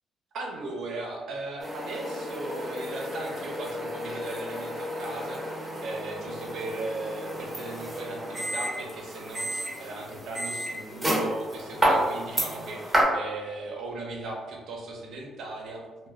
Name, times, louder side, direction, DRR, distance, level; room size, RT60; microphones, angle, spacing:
voice 1, 0.3-5.5 5.8-15.9, right 2 dB, 70° right, 0 dB, 0.6 m, -37 dB
sound 1, 1.6-13.0, equal, 15° right, 0.8 m, -31 dB
2.2 x 2.1 x 3.4 m, 1.2 s
cardioid pair, 90°, 0 cm